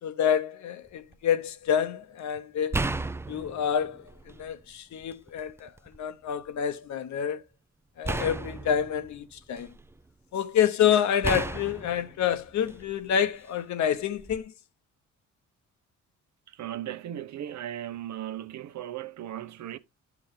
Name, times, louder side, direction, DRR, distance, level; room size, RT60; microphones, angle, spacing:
voice 1, 0.0-2.9 3.3-7.4 8.0-9.7 10.3-14.5, left 8 dB, 65° left, 0.9 m, -28 dB
sound 1, 0.9-1.1 2.7-4.6 5.0-6.0 8.0-10.0 11.2-13.1 14.2-14.4, right 2 dB, 10° right, 0.4 m, -34 dB
voice 2, 16.5-19.8, right 11 dB, 65° right, 0.9 m, -37 dB
10.5 x 6.0 x 3.3 m
cardioid pair, 90°, 30 cm